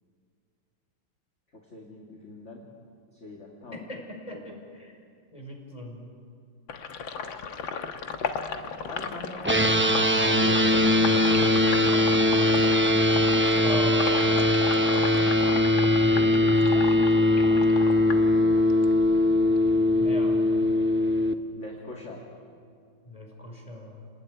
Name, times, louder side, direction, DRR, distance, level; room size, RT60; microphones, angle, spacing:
voice 1, 1.7-2.7 3.2-3.8 4.3-4.5 8.8-9.8 10.2-12.8 16.0-17.5 21.5-22.2, left 2 dB, 35° left, -1 dB, 2.9 m, -42 dB
voice 2, 3.7-5.0 5.3-6.1 13.6-14.6 15.9-16.3 20.0-20.6 23.0-24.1, equal, 15° left, 1 dB, 5.4 m, -39 dB
Sink (filling or washing), 6.7-19.0 19.3-20.7, left 6 dB, 75° left, 2.0 m, -35 dB
sound 1, 9.4-21.3, left 1 dB, 15° right, 0.4 m, -21 dB
30.0 x 19.5 x 9.9 m, 2.3 s
omnidirectional pair, 2.2 m